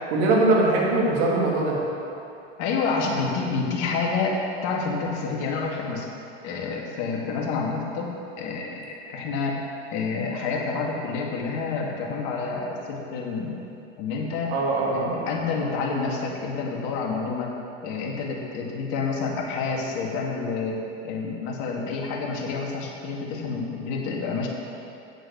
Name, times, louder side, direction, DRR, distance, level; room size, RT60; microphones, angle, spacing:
voice 1, 0.1-1.8 14.5-15.2, right 2 dB, 65° right, -3 dB, 2.8 m, -21 dB
voice 2, 2.6-6.1 6.4-8.1 8.4-9.6 9.9-13.5 14.0-14.5 14.9-17.5 17.8-24.5, left 4 dB, 55° left, -1 dB, 2.2 m, -28 dB
8.6 x 7.6 x 7.0 m, 2.8 s
hypercardioid pair, 90°, 34 cm